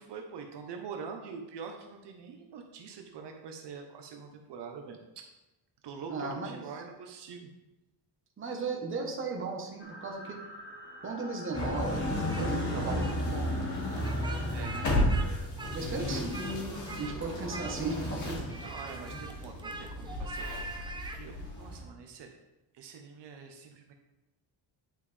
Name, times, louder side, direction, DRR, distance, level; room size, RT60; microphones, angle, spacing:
voice 1, 0.0-5.2 5.8-7.5 14.5-15.1 18.5-22.3 22.7-23.9, right 6 dB, 70° right, 4 dB, 0.9 m, -45 dB
voice 2, 6.1-6.6 8.4-10.4 11.0-13.5 15.7-16.4 17.0-18.4, right 3 dB, 30° right, 0 dB, 1.2 m, -36 dB
sound 1, 9.8-15.4, left 2 dB, 75° left, 1.7 m, -44 dB
sound 2, 11.5-21.8, left 1 dB, 40° left, 2.2 m, -33 dB
Speech, 11.5-12.5 12.8-13.2 14.0-15.3 15.6-16.6 16.9-17.2 17.5-18.1 18.5-21.2, right 3 dB, 10° right, 0.4 m, -43 dB
9.5 x 5.1 x 3.4 m, 1.0 s
cardioid pair, 155°, 44 cm